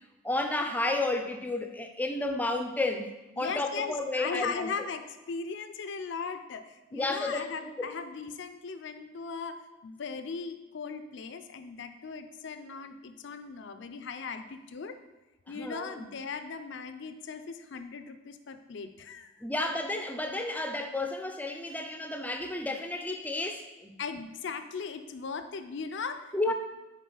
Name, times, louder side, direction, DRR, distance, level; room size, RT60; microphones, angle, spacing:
voice 1, 0.2-3.1 3.4-4.7 6.9-7.5 7.8-7.9 15.5-16.1 19.4-23.9 26.3-26.5, left 2 dB, 10° left, 5 dB, 0.5 m, -31 dB
voice 2, 3.4-15.0 15.5-19.3 24.0-26.5, left 5 dB, 65° left, 9 dB, 0.5 m, -38 dB
6.3 x 4.1 x 3.9 m, 1.1 s
head